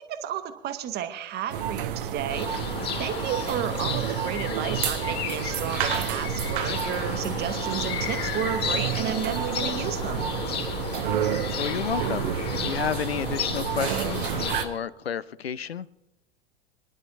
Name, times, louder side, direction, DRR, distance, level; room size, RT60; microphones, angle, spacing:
voice 1, 0.0-2.5 3.0-10.2, right 10 dB, 30° right, 9 dB, 1.2 m, -32 dB
sound 1, 1.5-14.6, right 9 dB, 60° right, 1.0 m, -30 dB
sound 2, 2.3-14.7, left 7 dB, 30° left, 2.2 m, -33 dB
voice 2, 11.2-15.9, left 8 dB, 80° left, 18 dB, 0.6 m, -32 dB
29.5 x 11.0 x 2.7 m, 1.1 s
figure-of-eight pair, 85°, 31 cm